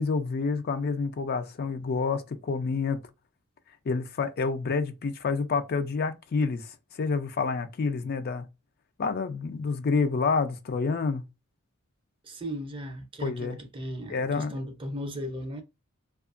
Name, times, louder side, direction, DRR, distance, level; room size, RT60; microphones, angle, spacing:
voice 1, 0.0-3.0 3.9-8.4 9.0-11.2 13.2-13.6 14.1-14.5, left 4 dB, 50° left, 0.4 m, -28 dB
voice 2, 12.2-15.6, equal, 25° right, 0.5 m, -36 dB
2.8 x 2.3 x 2.4 m
head